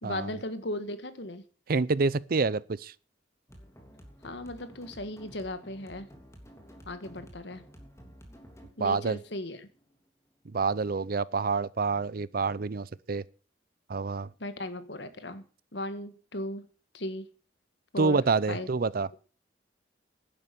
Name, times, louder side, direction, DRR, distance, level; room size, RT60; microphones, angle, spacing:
voice 1, 0.0-1.4 4.2-6.1 6.9-7.6 8.8-9.7 14.4-15.4 15.7-16.7 16.9-17.3 17.9-18.2 18.5-18.7, left 1 dB, 65° left, 1.7 m, -37 dB
voice 2, 1.7-2.9 8.8-9.2 10.5-13.2 13.9-14.3 18.0-19.1, right 4 dB, 55° right, 0.6 m, -27 dB
sound 1, 3.5-10.5, equal, 15° left, 3.1 m, -52 dB
11.5 x 10.0 x 6.8 m
head